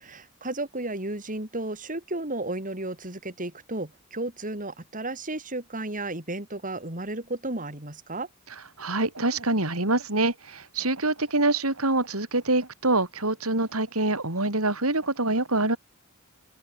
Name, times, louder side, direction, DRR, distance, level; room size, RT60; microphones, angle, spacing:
voice 1, 0.0-8.3, right 2 dB, 40° right, 6.1 m, -33 dB
voice 2, 8.8-15.8, right 2 dB, 85° right, 6.1 m, -25 dB
open air
head